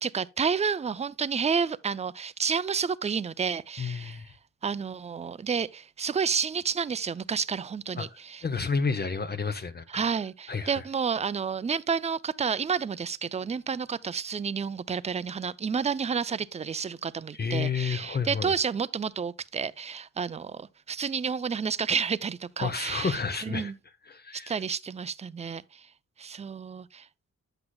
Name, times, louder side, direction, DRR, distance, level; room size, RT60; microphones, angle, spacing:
voice 1, 0.0-4.2 4.6-8.4 9.9-23.7 24.3-25.9 26.2-27.1, right 6 dB, 25° right, 0.4 m, -30 dB
voice 2, 3.8-4.3 8.0-8.1 8.4-10.1 10.5-10.8 17.3-18.5 22.6-23.7 24.1-24.5, left 5 dB, 35° left, 0.7 m, -30 dB
9.8 x 7.9 x 2.2 m
wide cardioid pair, 130°, 29 cm